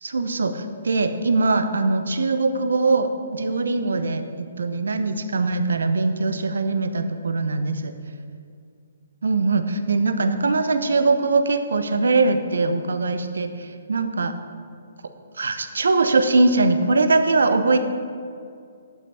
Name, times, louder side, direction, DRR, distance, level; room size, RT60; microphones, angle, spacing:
voice 1, 0.0-7.9 9.2-14.3 15.4-17.8, right 3 dB, 75° right, 9 dB, 0.8 m, -21 dB
11.5 x 6.0 x 5.6 m, 2.3 s
figure-of-eight pair, 135°, 0 cm